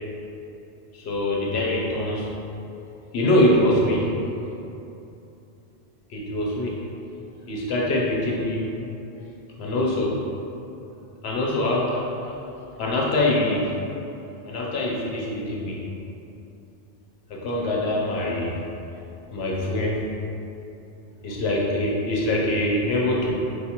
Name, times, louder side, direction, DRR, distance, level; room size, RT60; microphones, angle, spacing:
voice 1, 0.9-2.3 3.1-4.1 6.1-6.8 7.5-8.7 9.6-10.2 11.2-12.4 12.8-13.7 14.4-15.8 17.3-18.5 19.3-20.1 21.2-23.3, left 1 dB, 75° left, -3 dB, 0.9 m, -24 dB
4.6 x 2.3 x 2.9 m, 2.8 s
omnidirectional pair, 1.1 m